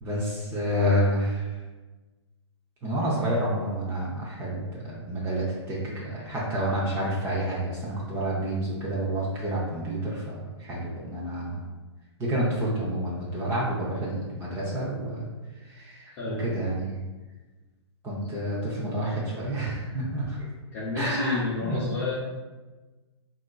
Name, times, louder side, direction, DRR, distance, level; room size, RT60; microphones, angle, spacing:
voice 1, 0.0-1.6 2.8-11.6 12.2-15.2 15.6-17.0 18.0-20.5 20.9-21.8, right 1 dB, 15° right, -6 dB, 0.5 m, -29 dB
voice 2, 20.7-22.1, left 3 dB, 30° left, -8 dB, 0.6 m, -30 dB
3.7 x 2.5 x 2.2 m, 1.2 s
hypercardioid pair, 140°, 15 cm